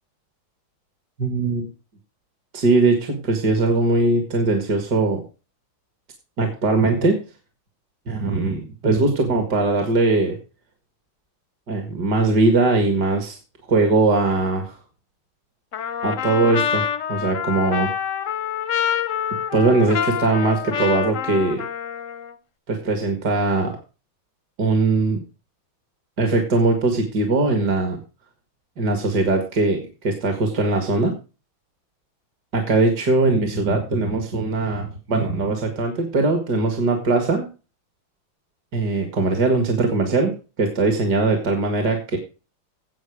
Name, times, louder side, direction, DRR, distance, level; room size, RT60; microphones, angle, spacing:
voice 1, 1.2-1.7 2.5-5.2 6.4-7.2 8.1-10.4 11.7-13.4 13.7-14.8 16.0-17.9 19.5-21.6 22.7-23.8 24.6-25.2 26.2-28.0 28.8-31.2 32.5-37.5 38.7-42.2, right 3 dB, 50° right, 5 dB, 2.3 m, -20 dB
Trumpet, 15.7-22.3, left 8 dB, 60° left, 0.8 m, -26 dB
17.0 x 5.8 x 4.9 m, 0.33 s
omnidirectional pair, 2.3 m